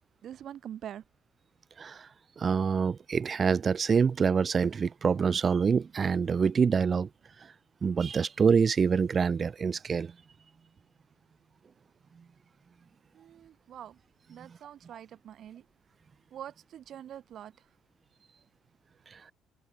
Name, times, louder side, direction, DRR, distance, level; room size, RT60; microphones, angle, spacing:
voice 1, 0.2-1.0 13.1-14.0 14.3-15.6 16.3-17.6, right 10 dB, 55° right, 6.1 m, -44 dB
voice 2, 1.8-2.1 2.4-7.1 7.8-10.1 19.1-19.2, right 6 dB, 40° right, 6.6 m, -26 dB
open air
hypercardioid pair, 55°, 0 cm